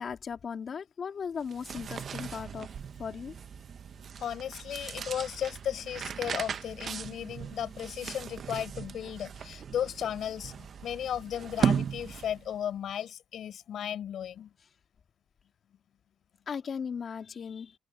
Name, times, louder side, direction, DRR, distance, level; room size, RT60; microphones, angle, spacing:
voice 1, 0.0-2.7 3.0-3.3 16.5-17.8, left 6 dB, 50° left, 3.2 m, -37 dB
sound 1, 1.4-12.6, right 7 dB, 55° right, 0.9 m, -36 dB
voice 2, 4.2-14.5, left 9 dB, 70° left, 4.6 m, -35 dB
cardioid pair, 90°, 0 cm